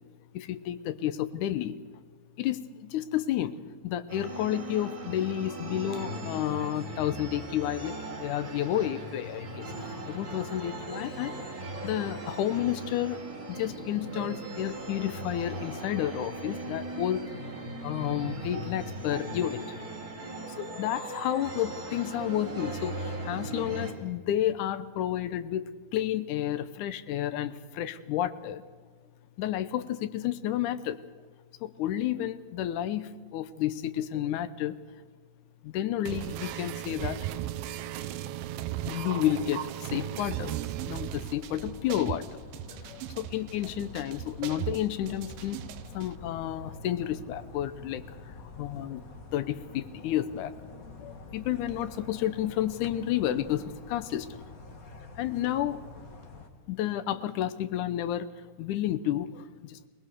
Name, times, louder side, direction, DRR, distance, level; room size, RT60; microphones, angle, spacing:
voice 1, 0.3-1.8 2.4-3.6 3.8-11.4 11.8-13.2 13.5-17.2 17.8-19.6 20.6-28.6 29.4-31.0 31.6-34.8 35.6-37.3 38.9-40.6 40.8-42.4 42.7-45.6 45.9-48.0 48.6-49.0 49.3-50.5 51.0-54.3 55.2-55.8 56.7-58.3 58.6-59.8, left 12 dB, 70° left, 13 dB, 2.0 m, -31 dB
sound 1, 4.1-23.9, right 1 dB, 25° right, 3.9 m, -38 dB
sound 2, 36.1-46.1, right 13 dB, 75° right, 2.4 m, -37 dB
sound 3, 41.3-56.5, left 3 dB, 50° left, 1.0 m, -47 dB
21.5 x 20.5 x 6.8 m, 1.5 s
omnidirectional pair, 4.4 m